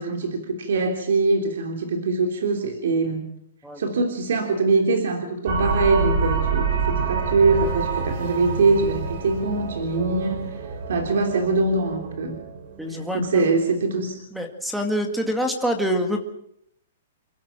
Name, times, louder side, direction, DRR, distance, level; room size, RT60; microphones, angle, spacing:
voice 1, 0.0-3.3 3.8-10.5 10.9-12.4 13.1-14.2, right 3 dB, 65° right, 3 dB, 3.4 m, -23 dB
sound 1, 5.5-13.5, right 5 dB, 45° right, 4.3 m, -27 dB
voice 2, 12.8-13.6 14.3-16.2, equal, ahead, 4 dB, 2.0 m, -26 dB
28.5 x 13.0 x 7.5 m, 0.76 s
hypercardioid pair, 175°, 0 cm